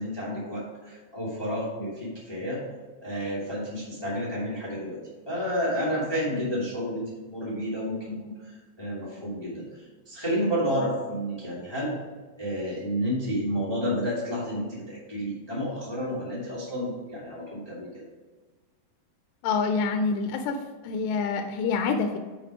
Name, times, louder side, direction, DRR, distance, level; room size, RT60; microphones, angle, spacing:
voice 1, 0.0-2.6 3.0-5.0 5.2-12.0 12.3-18.0, equal, 10° left, -7 dB, 1.1 m, -30 dB
voice 2, 19.4-20.6 20.8-22.2, left 4 dB, 85° left, 4 dB, 2.7 m, -26 dB
6.5 x 5.9 x 4.8 m, 1.3 s
omnidirectional pair, 4.8 m